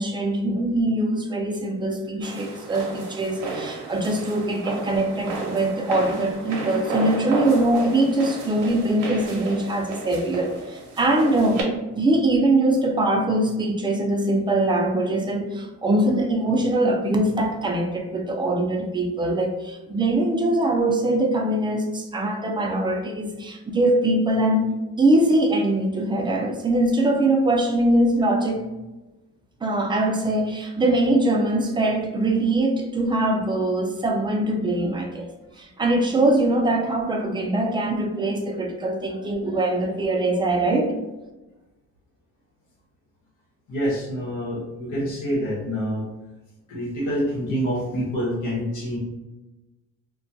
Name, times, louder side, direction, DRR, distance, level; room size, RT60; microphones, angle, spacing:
voice 1, 0.0-11.7 12.0-24.7 25.0-28.7 29.6-35.3 35.6-40.9, right 1 dB, 15° right, 2 dB, 0.4 m, -22 dB
sound 1, 2.2-11.6, right 3 dB, 80° right, 0.7 m, -33 dB
voice 2, 43.7-46.1 46.7-49.0, equal, 80° left, -7 dB, 1.0 m, -26 dB
2.3 x 2.2 x 2.6 m, 1.1 s
cardioid pair, 90°, 30 cm